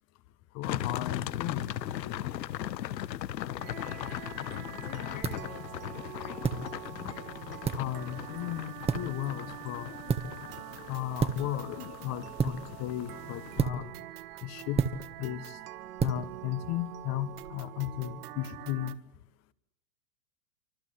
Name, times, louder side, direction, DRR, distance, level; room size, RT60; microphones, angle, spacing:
voice 1, 0.5-1.7 2.0-2.3 7.7-9.9 10.9-13.9 14.4-14.8 15.2-15.4 16.0-19.0, left 13 dB, 30° left, 1.3 m, -35 dB
sound 1, 0.6-13.6, left 12 dB, 85° left, 1.3 m, -39 dB
voice 2, 3.4-4.3 4.6-6.5, left 9 dB, 15° left, 1.0 m, -49 dB
sound 2, 3.6-19.0, right 15 dB, 65° right, 1.6 m, -45 dB
sound 3, 4.0-17.5, right 5 dB, 10° right, 1.5 m, -35 dB
28.5 x 25.0 x 8.2 m
hypercardioid pair, 140°, 49 cm